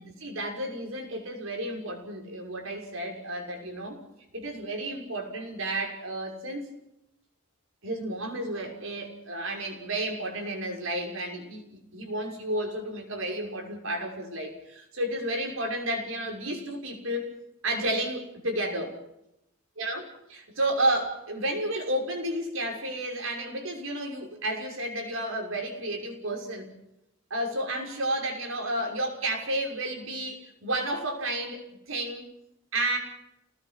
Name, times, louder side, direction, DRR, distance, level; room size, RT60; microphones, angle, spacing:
voice 1, 0.0-4.0 4.3-6.7 7.8-17.3 17.6-19.0 19.8-20.0 20.3-26.8 27.3-32.2 32.7-33.0, right 1 dB, 75° right, 2 dB, 6.2 m, -32 dB
29.5 x 19.5 x 5.9 m, 0.86 s
head